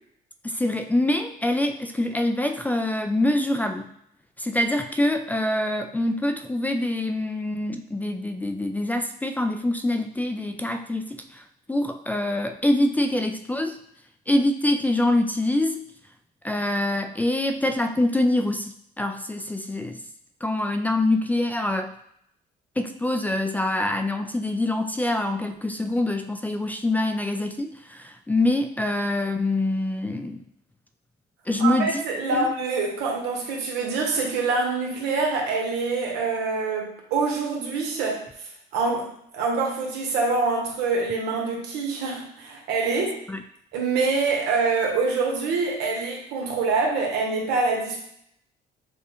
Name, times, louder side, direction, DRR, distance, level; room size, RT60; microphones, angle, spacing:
voice 1, 0.4-3.9 4.4-11.4 11.7-13.8 14.3-15.9 16.4-20.0 20.4-21.9 22.8-30.4 31.5-32.0 32.3-32.5 43.3-43.4, left 1 dB, 10° left, 6 dB, 0.3 m, -25 dB
voice 2, 31.6-38.2 38.7-43.2 43.7-48.0, right 4 dB, 85° right, 0 dB, 1.3 m, -25 dB
6.4 x 2.3 x 3.6 m, 0.72 s
cardioid pair, 110°, 17 cm